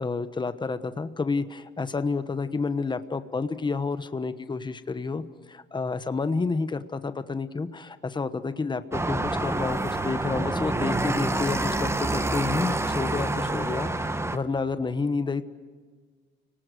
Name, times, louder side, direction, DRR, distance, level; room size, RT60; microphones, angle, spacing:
voice 1, 0.0-15.4, left 4 dB, 25° left, 11 dB, 1.1 m, -30 dB
sound 1, 8.9-14.4, right 2 dB, 15° right, 1.1 m, -27 dB
29.5 x 19.0 x 6.5 m, 1.5 s
cardioid pair, 90°, 20 cm